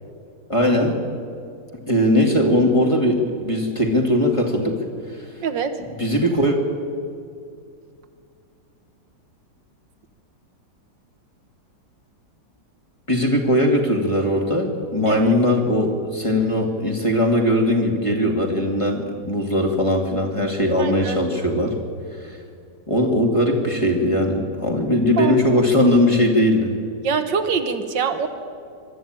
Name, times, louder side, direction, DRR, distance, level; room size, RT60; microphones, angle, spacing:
voice 1, 0.5-1.0 1.9-4.8 6.0-6.6 13.1-21.8 22.2-22.4 22.9-26.7, left 1 dB, 15° left, 1 dB, 2.3 m, -19 dB
voice 2, 5.4-5.7 15.1-15.3 20.8-21.2 25.2-25.4 27.0-28.3, right 6 dB, 85° right, 9 dB, 2.0 m, -24 dB
22.5 x 13.0 x 9.0 m, 2.4 s
omnidirectional pair, 1.9 m